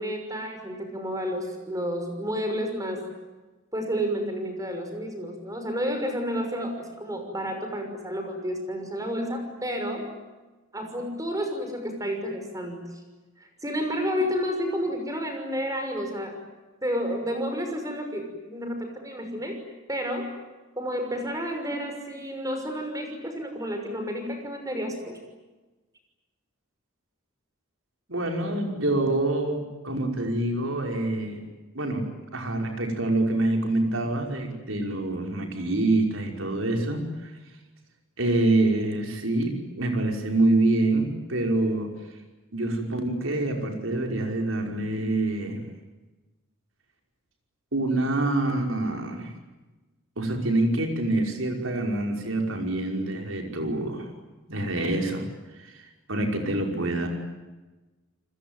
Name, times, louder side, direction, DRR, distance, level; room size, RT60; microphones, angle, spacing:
voice 1, 0.0-3.1 3.7-10.1 10.7-12.8 13.4-16.4 16.8-19.6 19.9-20.3 20.8-25.2, equal, 15° right, 5 dB, 6.0 m, -30 dB
voice 2, 28.1-31.4 31.7-37.3 38.2-41.9 42.5-45.6 47.7-49.3 50.2-54.1 54.5-55.2 55.6-55.7 56.1-57.1, right 2 dB, 70° right, 3 dB, 5.5 m, -26 dB
30.0 x 21.0 x 9.1 m, 1.2 s
head